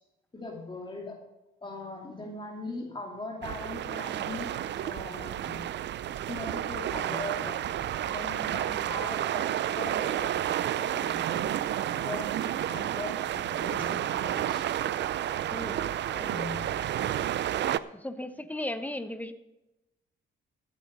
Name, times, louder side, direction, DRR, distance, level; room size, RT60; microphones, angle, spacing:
voice 1, 0.3-1.2 1.6-5.6 6.3-10.4 10.7-11.4 11.9-14.7 16.1-16.7, left 2 dB, 25° left, 0 dB, 2.6 m, -40 dB
sound 1, 3.4-17.8, right 11 dB, 60° right, 0.6 m, -31 dB
voice 2, 15.5-15.9 16.2-16.3 18.0-19.3, left 1 dB, 10° left, 10 dB, 1.1 m, -36 dB
14.5 x 8.7 x 5.4 m, 0.97 s
cardioid pair, 90°, 20 cm